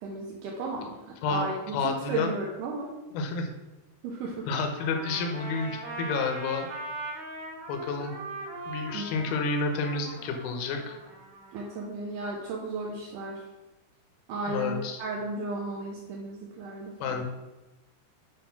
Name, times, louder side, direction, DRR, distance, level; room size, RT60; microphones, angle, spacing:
voice 1, 0.0-2.9 4.0-4.5 8.9-9.3 11.5-13.4 14.3-17.2, right 2 dB, 80° right, -1 dB, 1.8 m, -34 dB
voice 2, 1.7-2.3 3.1-3.5 4.5-6.7 7.7-8.1 8.7-11.0 14.5-15.0 17.0-17.2, left 4 dB, 75° left, 5 dB, 2.6 m, -30 dB
Trumpet, 4.8-11.9, right 2 dB, 60° right, 3.0 m, -40 dB
8.0 x 3.6 x 5.7 m, 1.1 s
omnidirectional pair, 4.7 m